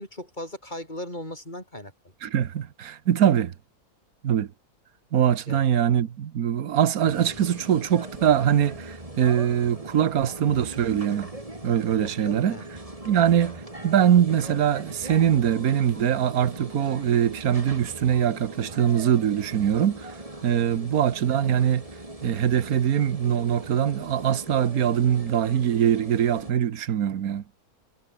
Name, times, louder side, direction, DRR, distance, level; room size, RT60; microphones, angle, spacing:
voice 1, 0.0-1.9 5.5-5.7 12.0-12.7 20.7-20.9, left 1 dB, 30° left, 8.3 m, -38 dB
voice 2, 2.2-3.5 4.2-4.5 5.1-11.3 11.6-12.6 13.1-20.1 20.4-21.8 22.2-27.4, right 9 dB, 75° right, 1.5 m, -22 dB
sound 1, 7.0-26.5, right 1 dB, 20° right, 3.9 m, -40 dB
omnidirectional pair, 1.6 m